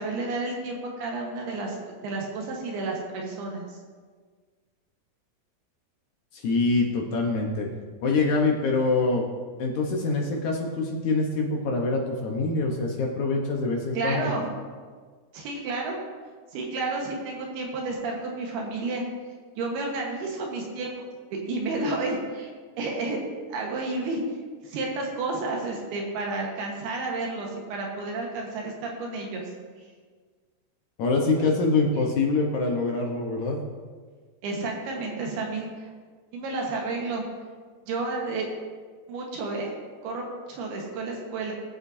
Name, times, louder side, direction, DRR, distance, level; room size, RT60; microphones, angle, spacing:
voice 1, 0.0-3.8 13.9-14.5 15.3-16.0 16.5-19.0 19.6-20.9 21.3-22.5 22.8-23.2 23.5-24.2 24.6-29.5 29.8-29.9 34.4-35.9 36.3-37.2 37.9-38.5 39.1-39.7 40.0-40.2 40.5-41.5, right 3 dB, 75° right, 0 dB, 3.2 m, -31 dB
voice 2, 6.3-7.7 8.0-9.2 9.6-14.3 31.0-33.6, left 3 dB, 70° left, 0 dB, 1.9 m, -25 dB
21.0 x 8.0 x 2.7 m, 1.5 s
omnidirectional pair, 4.7 m